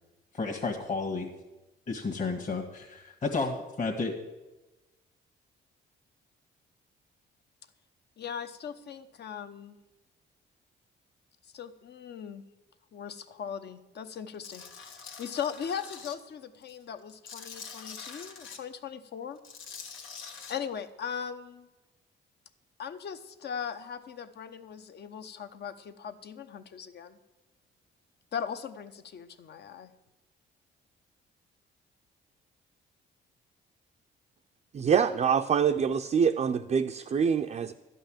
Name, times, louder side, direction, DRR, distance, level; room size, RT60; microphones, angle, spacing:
voice 1, 0.3-1.3 1.9-4.1, left 3 dB, 40° left, 2 dB, 1.6 m, -32 dB
voice 2, 8.2-9.8 11.5-12.4 12.9-19.4 20.5-21.6 22.8-27.2 28.3-29.9, left 7 dB, 55° left, 9 dB, 0.9 m, -39 dB
Tools, 14.4-16.1 16.6-18.6 19.4-20.5, left 5 dB, 80° left, 1.4 m, -45 dB
voice 3, 34.7-37.7, right 7 dB, 35° right, 4 dB, 0.5 m, -25 dB
12.0 x 5.5 x 8.9 m, 1.1 s
cardioid pair, 90°, 20 cm